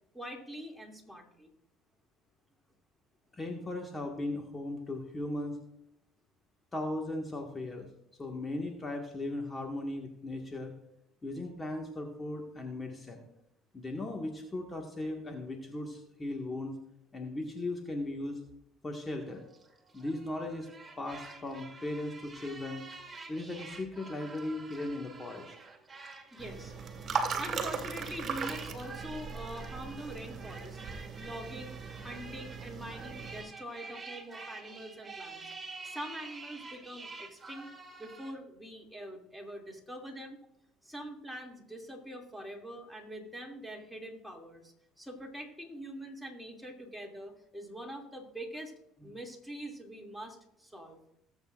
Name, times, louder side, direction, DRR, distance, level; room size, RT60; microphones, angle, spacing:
voice 1, 0.1-1.5 21.1-21.2 23.2-23.3 26.3-26.7 27.1-30.8 31.2-31.8 32.0-35.4 35.8-37.7 38.0-40.4 40.8-48.7 49.0-51.0, equal, ahead, 0 dB, 2.6 m, -44 dB
voice 2, 3.3-5.6 6.7-7.9 8.2-10.7 11.2-13.2 13.7-16.8 17.1-18.4 18.8-19.4 19.9-20.7 21.0-22.8 23.3-25.6, left 2 dB, 25° left, 1 dB, 1.7 m, -37 dB
sound 1, 19.3-38.3, right 4 dB, 20° right, 2.1 m, -49 dB
sound 2, 26.4-33.4, right 5 dB, 45° right, 2.0 m, -38 dB
20.0 x 8.1 x 2.5 m, 0.80 s
supercardioid pair, 80°, 0 cm